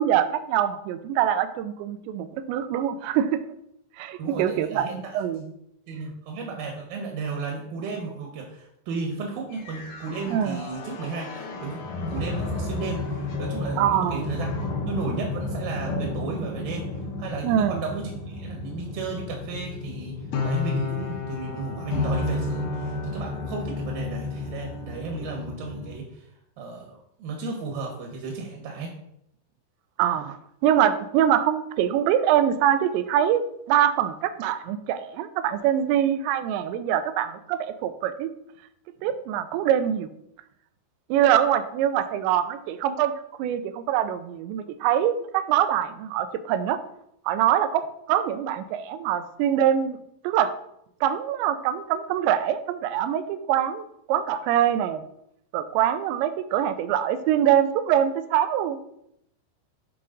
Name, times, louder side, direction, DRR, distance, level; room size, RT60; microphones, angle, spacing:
voice 1, 0.0-3.4 4.0-5.4 10.3-10.6 13.8-14.3 17.4-17.8 30.0-38.3 39.0-40.1 41.1-46.8 47.3-50.0 50.2-50.5 51.0-55.0 55.5-58.8, right 10 dB, 85° right, 11 dB, 2.9 m, -24 dB
voice 2, 4.2-5.1 5.9-14.5 14.9-16.9 17.2-26.3 26.6-28.9, right 4 dB, 65° right, 0 dB, 2.5 m, -34 dB
sound 1, 9.5-25.9, left 3 dB, 65° left, 2.1 m, -31 dB
11.0 x 4.4 x 3.9 m, 0.76 s
omnidirectional pair, 5.0 m